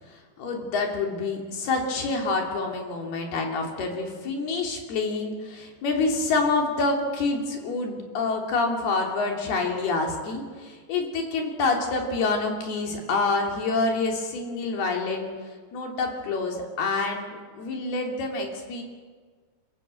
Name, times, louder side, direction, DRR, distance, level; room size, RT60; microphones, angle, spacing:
voice 1, 0.0-15.3 15.7-18.8, left 3 dB, 65° left, 2 dB, 5.0 m, -27 dB
28.0 x 16.0 x 7.8 m, 1.5 s
omnidirectional pair, 4.9 m